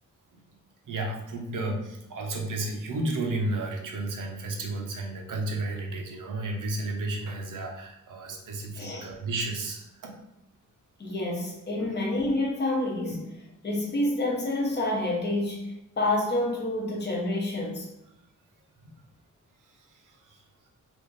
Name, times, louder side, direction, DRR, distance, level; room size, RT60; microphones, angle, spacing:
voice 1, 0.9-10.1 11.8-11.9 13.1-13.2 18.8-18.9 19.9-20.4, right 2 dB, 75° right, 1 dB, 0.8 m, -33 dB
voice 2, 8.7-9.1 11.0-13.2 13.6-17.9, left 1 dB, 35° left, -2 dB, 0.9 m, -28 dB
3.5 x 2.6 x 3.9 m, 0.89 s
wide cardioid pair, 170°, 32 cm